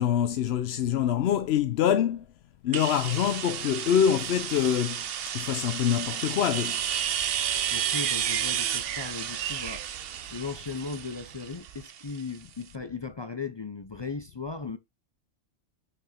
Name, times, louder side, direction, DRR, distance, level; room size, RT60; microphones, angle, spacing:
voice 1, 0.0-2.2 2.6-5.0 5.3-6.9, left 9 dB, 65° left, 0.8 m, -25 dB
sound 1, 2.7-12.4, right 9 dB, 60° right, 0.8 m, -32 dB
sound 2, 6.8-11.8, right 10 dB, 80° right, 1.0 m, -41 dB
voice 2, 7.7-9.9 10.3-14.8, left 4 dB, 40° left, 0.4 m, -37 dB
6.1 x 6.0 x 4.2 m
omnidirectional pair, 1.2 m